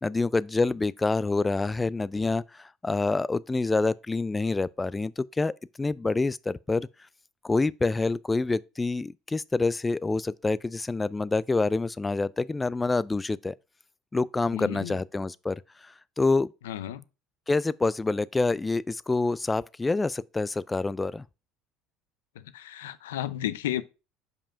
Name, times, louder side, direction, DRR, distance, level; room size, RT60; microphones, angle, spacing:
voice 1, 0.0-5.5 5.8-6.9 7.4-13.5 14.1-15.6 15.8-16.5 17.5-21.2, left 3 dB, 15° left, 0.3 m, -27 dB
voice 2, 14.5-15.0 16.6-17.0 22.5-23.8, left 12 dB, 90° left, 0.5 m, -33 dB
5.3 x 5.0 x 5.6 m
supercardioid pair, 85°, 0 cm